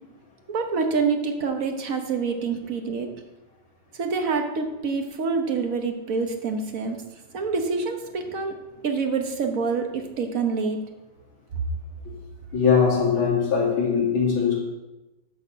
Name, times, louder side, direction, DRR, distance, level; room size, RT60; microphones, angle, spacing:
voice 1, 0.5-3.1 4.0-7.0 7.3-8.5 8.8-10.8, right 4 dB, 50° right, 4 dB, 1.1 m, -26 dB
voice 2, 12.5-14.6, left 6 dB, 70° left, -4 dB, 3.4 m, -21 dB
11.0 x 4.2 x 7.4 m, 1.0 s
omnidirectional pair, 2.4 m